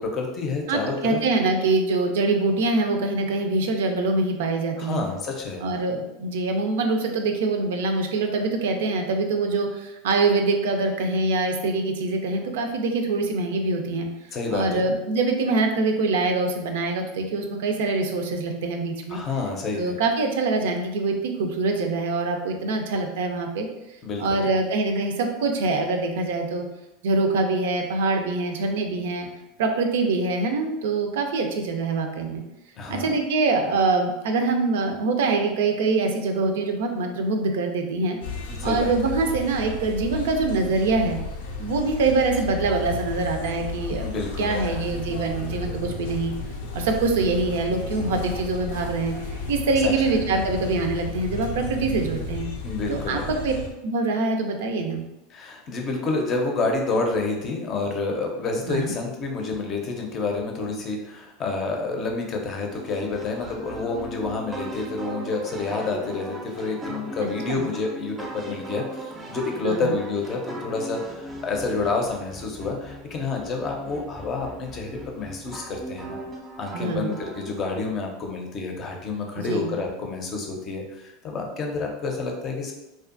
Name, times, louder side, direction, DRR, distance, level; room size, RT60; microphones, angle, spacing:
voice 1, 0.0-1.2 4.8-5.6 14.3-14.8 19.1-19.9 24.0-24.5 32.8-33.1 38.6-38.9 44.0-44.8 49.8-50.1 52.6-53.4 55.3-76.2 76.6-82.7, left 3 dB, 40° left, 1 dB, 0.5 m, -29 dB
voice 2, 0.7-5.0 5.6-14.1 14.5-19.2 19.8-23.7 24.2-26.7 27.0-29.3 29.6-32.4 32.9-38.2 38.6-41.2 41.6-46.3 46.7-52.5 52.9-53.5 53.8-55.0 58.7-58.9 67.5-67.6 69.6-69.9 76.7-77.2 79.4-79.7, right 3 dB, 80° right, 4 dB, 0.4 m, -24 dB
sound 1, 38.2-53.7, left 3 dB, 80° left, 0.5 m, -33 dB
sound 2, 62.7-77.8, right 1 dB, 20° right, 0.4 m, -38 dB
2.6 x 2.3 x 2.5 m, 0.95 s
supercardioid pair, 115°, 0 cm